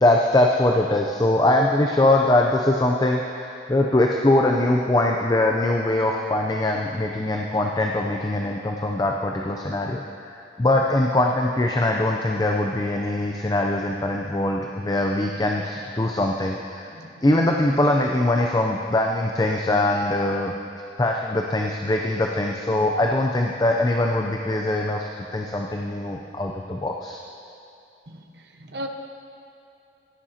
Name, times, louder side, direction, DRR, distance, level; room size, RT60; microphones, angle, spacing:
voice 1, 0.0-16.9 17.2-20.5 21.0-27.2, left 1 dB, 20° left, 1 dB, 0.4 m, -22 dB
voice 2, 16.9-17.4 28.1-28.9, equal, 75° right, 3 dB, 0.8 m, -38 dB
16.0 x 10.0 x 2.8 m, 2.7 s
head